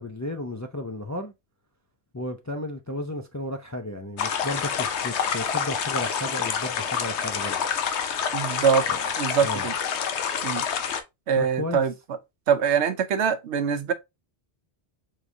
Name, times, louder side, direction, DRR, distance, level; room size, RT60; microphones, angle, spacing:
voice 1, 0.0-1.3 2.1-7.6 8.9-9.0 9.4-9.7 11.4-11.8, left 1 dB, 25° left, 0.4 m, -33 dB
sound 1, 4.2-11.0, left 7 dB, 85° left, 1.0 m, -27 dB
voice 2, 8.3-8.9 9.2-9.7 10.4-10.6 11.3-11.9 12.5-13.9, right 7 dB, 90° right, 1.0 m, -23 dB
4.7 x 3.6 x 2.6 m
omnidirectional pair, 1.1 m